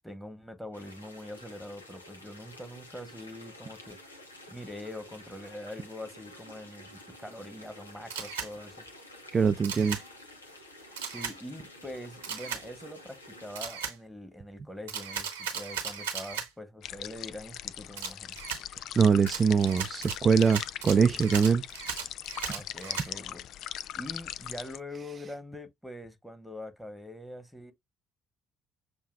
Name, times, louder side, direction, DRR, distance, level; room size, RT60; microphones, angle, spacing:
voice 1, 0.0-4.0 4.5-8.9 10.8-18.4 22.4-27.7, left 1 dB, ahead, 1.4 m, -44 dB
sound 1, 0.7-13.7, left 1 dB, 90° left, 0.7 m, -50 dB
Camera, 8.1-8.5 9.6-10.0 11.0-11.3 12.2-12.6 13.5-13.9 14.9-16.5 18.0-18.6 19.3-23.1, right 7 dB, 75° right, 0.9 m, -36 dB
voice 2, 9.3-10.0 19.0-21.6, right 6 dB, 35° right, 0.4 m, -23 dB
sound 2, 16.8-24.8, left 11 dB, 55° left, 0.3 m, -40 dB
7.3 x 2.6 x 2.3 m
figure-of-eight pair, 50°, 0 cm